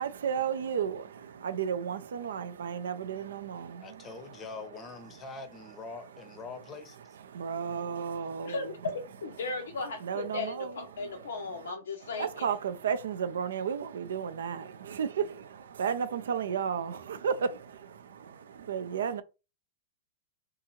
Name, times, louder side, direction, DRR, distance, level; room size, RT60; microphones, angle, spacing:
voice 1, 0.0-4.4 7.2-8.7 10.0-11.7 12.0-19.2, right 7 dB, 70° right, 0.4 m, -34 dB
voice 2, 3.8-7.2, left 4 dB, 25° left, 0.6 m, -44 dB
voice 3, 8.4-12.4, left 4 dB, 75° left, 0.5 m, -36 dB
2.7 x 2.4 x 2.9 m
figure-of-eight pair, 105°, 0 cm